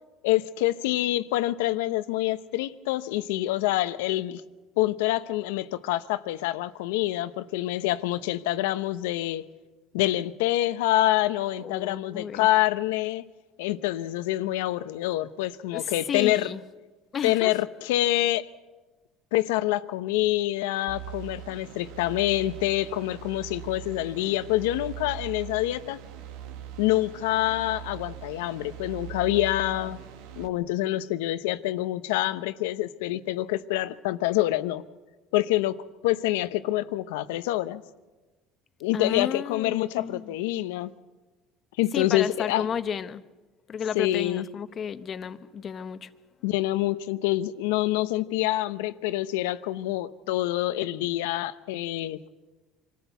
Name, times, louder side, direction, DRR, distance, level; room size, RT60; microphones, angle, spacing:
voice 1, 0.2-4.4 4.8-9.4 9.9-13.2 13.6-16.5 17.2-18.5 19.3-26.0 26.8-30.0 30.4-34.8 35.3-37.8 38.8-40.9 41.8-42.7 43.9-44.5 46.4-52.3, left 15 dB, 85° left, 0.8 m, -26 dB
voice 2, 11.6-12.5 15.7-16.6 17.1-17.6 38.9-40.4 41.9-43.2 43.7-46.1, left 7 dB, 40° left, 1.0 m, -32 dB
sound 1, 20.9-30.5, right 10 dB, 80° right, 1.5 m, -41 dB
25.0 x 14.0 x 8.1 m
supercardioid pair, 90°, 0 cm